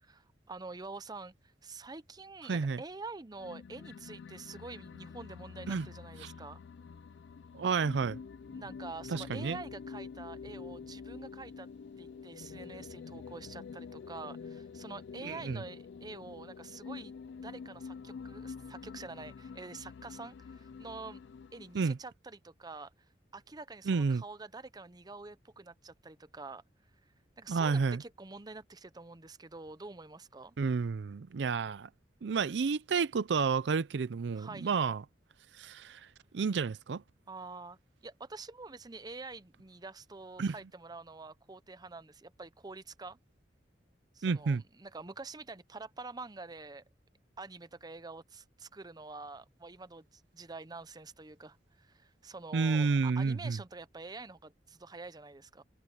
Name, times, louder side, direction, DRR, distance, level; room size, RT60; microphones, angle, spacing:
voice 1, 0.0-6.6 8.5-11.7 12.0-21.2 21.5-22.9 23.3-26.6 27.4-30.6 34.3-34.7 37.3-43.2 44.1-46.8 47.4-55.6, right 3 dB, 25° right, 0.7 m, -47 dB
voice 2, 2.5-2.8 5.7-5.9 6.2-6.3 7.5-8.2 9.1-9.6 15.2-15.6 21.7-22.0 23.9-24.2 27.5-28.0 30.6-31.9 32.2-35.0 35.6-36.0 36.3-37.0 40.4-40.5 44.2-44.6 52.5-53.6, right 5 dB, 85° right, 0.5 m, -30 dB
sound 1, 3.4-22.0, left 5 dB, 80° left, 0.4 m, -47 dB
head